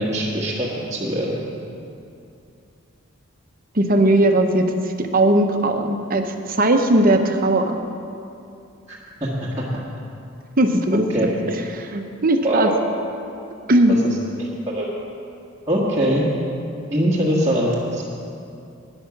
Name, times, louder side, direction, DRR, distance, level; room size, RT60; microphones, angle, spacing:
voice 1, 0.0-1.4 8.9-9.7 10.9-11.3 12.4-12.7 14.0-14.9 15.7-16.3 16.9-18.0, equal, 15° right, -8 dB, 1.4 m, -23 dB
voice 2, 3.7-6.2 6.5-7.8 10.6-11.3 11.7-12.7 13.7-14.0, right 1 dB, 40° right, 5 dB, 0.8 m, -18 dB
12.5 x 9.9 x 5.9 m, 2.6 s
head